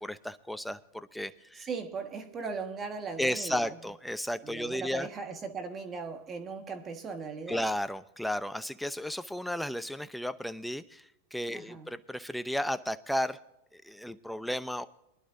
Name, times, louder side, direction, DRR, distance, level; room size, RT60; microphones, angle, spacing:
voice 1, 0.0-1.7 3.2-5.1 7.5-11.1 11.3-13.4 13.7-14.9, equal, ahead, 0.7 m, -34 dB
voice 2, 1.5-3.7 4.4-7.6 11.5-11.9, right 4 dB, 25° right, 1.6 m, -38 dB
23.0 x 11.5 x 2.7 m
hypercardioid pair, 110°, 0 cm